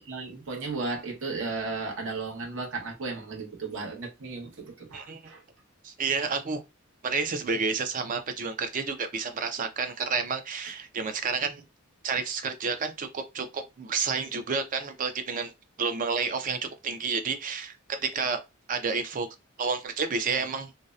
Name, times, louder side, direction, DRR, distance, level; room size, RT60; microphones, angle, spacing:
voice 1, 0.0-5.4 10.7-10.8, right 3 dB, 65° right, 0.9 m, -35 dB
voice 2, 5.8-6.6 7.0-11.6 12.0-15.5 15.8-18.4 18.7-19.3 19.6-20.7, right 5 dB, 40° right, 0.4 m, -30 dB
2.6 x 2.0 x 2.3 m
head